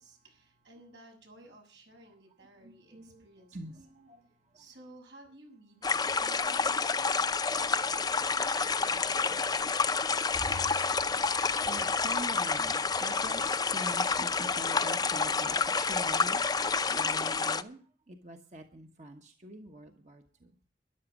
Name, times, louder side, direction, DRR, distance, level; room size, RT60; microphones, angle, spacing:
voice 1, 0.0-3.6 4.5-7.1 7.4-9.9, right 1 dB, 90° right, 2 dB, 6.9 m, -56 dB
voice 2, 2.1-4.7 7.3-20.5, right 1 dB, 40° right, 4 dB, 1.2 m, -46 dB
sound 1, 5.8-17.6, left 4 dB, 20° left, 0.6 m, -29 dB
13.5 x 11.0 x 6.1 m, 0.42 s
head